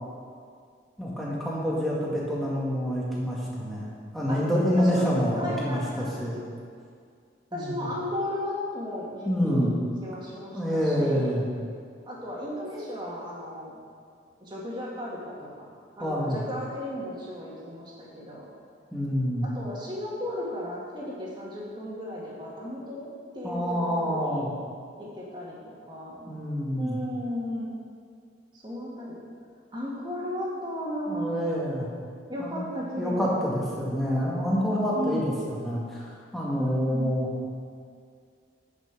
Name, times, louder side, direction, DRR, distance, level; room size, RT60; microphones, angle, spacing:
voice 1, 1.0-6.4 7.5-7.9 9.2-9.7 10.5-11.4 16.0-16.4 18.9-19.5 23.4-24.5 26.3-27.0 31.1-31.9 32.4-32.6 33.0-37.3, equal, ahead, -6 dB, 1.9 m, -27 dB
voice 2, 4.7-6.2 7.5-9.7 10.0-11.4 12.1-13.8 14.4-18.5 19.4-23.1 23.3-24.5 25.0-26.4 26.8-27.7 28.5-29.2 29.7-31.3 32.3-33.4 34.9-35.3 36.6-37.2, equal, 25° right, -5 dB, 2.1 m, -35 dB
10.5 x 5.9 x 6.1 m, 2.2 s
head